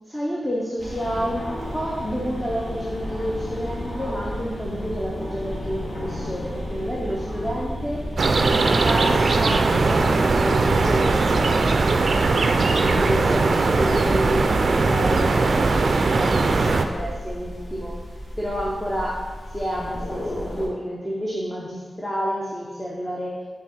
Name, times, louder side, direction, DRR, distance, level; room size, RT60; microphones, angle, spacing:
voice 1, 0.1-8.1 8.8-11.8 12.2-18.0 18.4-23.4, equal, 15° left, -4 dB, 0.7 m, -29 dB
sound 1, 0.8-20.7, equal, 60° left, 1.5 m, -33 dB
sound 2, 8.2-16.8, right 3 dB, 55° right, 0.4 m, -20 dB
4.7 x 3.6 x 5.6 m, 1.4 s
wide cardioid pair, 120°, 0 cm